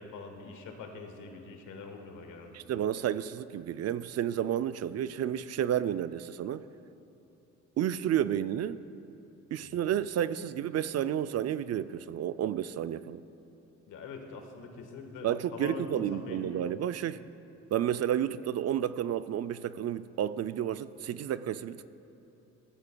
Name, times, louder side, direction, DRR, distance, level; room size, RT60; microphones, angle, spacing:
voice 1, 0.0-2.6 9.7-9.8 13.9-16.6, left 4 dB, 90° left, 4 dB, 1.5 m, -44 dB
voice 2, 2.5-6.6 7.8-8.8 9.5-13.2 15.2-17.2 17.7-21.9, right 10 dB, 55° right, 14 dB, 0.4 m, -31 dB
17.0 x 14.0 x 2.3 m, 3.0 s
cardioid pair, 90°, 30 cm